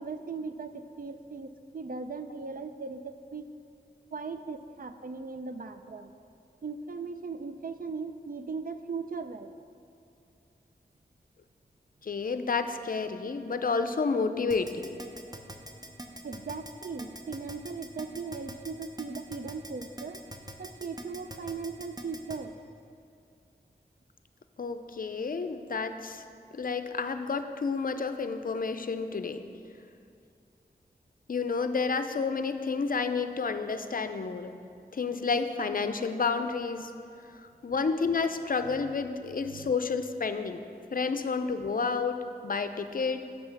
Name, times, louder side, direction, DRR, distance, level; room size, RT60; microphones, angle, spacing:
voice 1, 0.0-3.5 4.1-6.1 6.6-9.5 15.7-20.2 20.6-22.5 38.6-38.9 39.5-39.7, right 4 dB, 55° right, 9 dB, 0.4 m, -38 dB
voice 2, 12.0-15.0 24.6-26.2 26.5-29.5 31.3-34.5 34.9-36.9 37.6-40.6 40.9-43.3, left 4 dB, 55° left, 9 dB, 0.5 m, -30 dB
Keyboard (musical), 14.5-22.4, right 1 dB, 20° right, 0.7 m, -42 dB
8.1 x 5.5 x 5.9 m, 2.5 s
wide cardioid pair, 55°, 18 cm